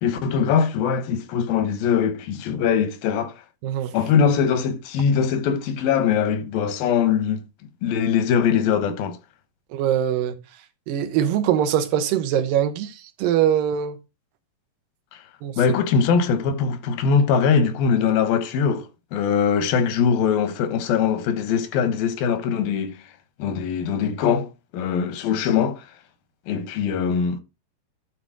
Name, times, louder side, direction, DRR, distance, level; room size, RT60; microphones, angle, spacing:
voice 1, 0.0-3.4 3.9-7.4 7.8-9.2 15.1-15.2 15.6-23.0 23.4-25.8 26.5-27.4, left 7 dB, 85° left, 2.9 m, -22 dB
voice 2, 3.6-3.9 9.7-10.4 10.9-14.0 15.4-15.6, right 10 dB, 80° right, 2.7 m, -22 dB
12.0 x 4.3 x 4.9 m
omnidirectional pair, 4.0 m